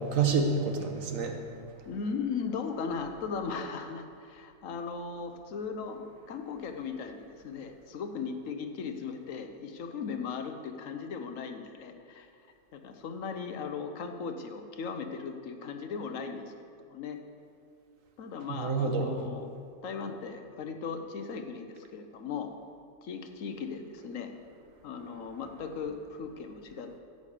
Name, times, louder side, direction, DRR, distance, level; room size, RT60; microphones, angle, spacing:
voice 1, 0.0-1.4 18.5-19.2, right 4 dB, 85° right, 4 dB, 1.4 m, -28 dB
voice 2, 1.9-12.3 12.7-16.5 16.9-17.2 18.2-19.5 19.8-22.5 23.0-24.3 24.8-27.0, left 5 dB, 80° left, 6 dB, 1.2 m, -37 dB
10.5 x 8.0 x 5.0 m, 2.4 s
omnidirectional pair, 1.3 m